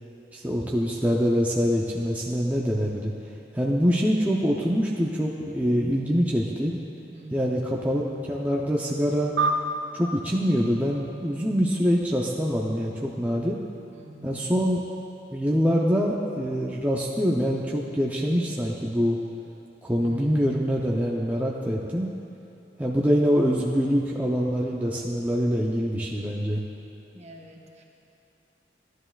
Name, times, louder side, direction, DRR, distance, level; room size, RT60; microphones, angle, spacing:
voice 1, 0.3-3.1 3.5-6.8 7.3-9.3 9.9-13.6 14.2-14.8 15.3-19.2 19.8-22.1 22.8-26.6, equal, 10° right, -3 dB, 0.5 m, -24 dB
voice 2, 7.1-7.6 13.9-14.5 19.9-20.4 27.1-27.8, right 2 dB, 40° right, 1 dB, 0.8 m, -45 dB
sound 1, 9.4-12.1, right 2 dB, 80° right, 0.6 m, -31 dB
15.0 x 11.0 x 2.3 m, 2.8 s
head